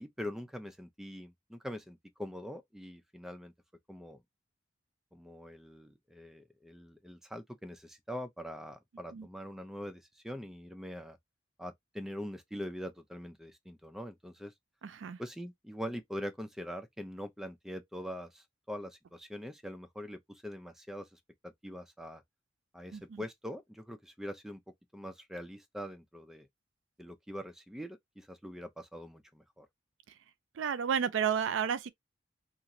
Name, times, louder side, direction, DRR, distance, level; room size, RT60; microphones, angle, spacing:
voice 1, 0.0-3.5 3.9-4.2 5.1-11.2 11.6-14.5 15.2-22.2 22.7-24.6 24.9-26.5 27.0-29.7, equal, ahead, 0.4 m, -43 dB
voice 2, 14.8-15.2 22.9-23.2 30.1-30.2 30.5-31.9, right 7 dB, 85° right, 0.4 m, -32 dB
2.9 x 2.4 x 2.5 m
head